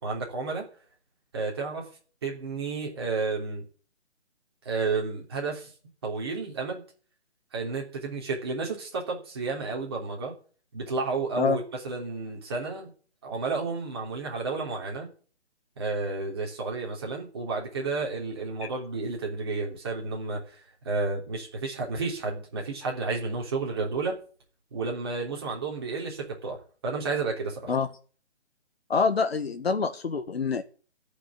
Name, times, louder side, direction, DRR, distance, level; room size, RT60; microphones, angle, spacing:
voice 1, 0.0-0.6 1.3-1.8 2.2-3.6 4.6-5.7 6.0-6.8 7.5-10.3 10.7-12.9 13.2-15.1 15.8-20.6 20.8-24.2 24.7-27.7, right 4 dB, 20° right, 3.3 m, -31 dB
voice 2, 28.9-30.6, left 5 dB, 60° left, 1.5 m, -26 dB
13.5 x 6.4 x 9.9 m
hypercardioid pair, 180°, 34 cm